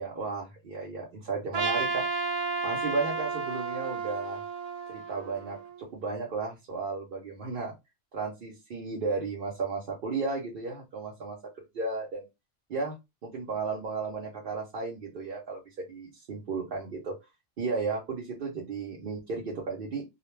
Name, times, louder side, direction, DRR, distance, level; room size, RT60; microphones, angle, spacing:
voice 1, 0.0-2.0 2.6-4.4 4.9-7.7 8.1-11.4 11.7-12.2 12.7-12.9 13.2-17.2 17.6-20.0, right 4 dB, 55° right, -2 dB, 0.8 m, -34 dB
Trumpet, 1.5-5.8, right 4 dB, 70° right, 0.3 m, -32 dB
2.4 x 2.1 x 3.1 m, 0.22 s
omnidirectional pair, 1.3 m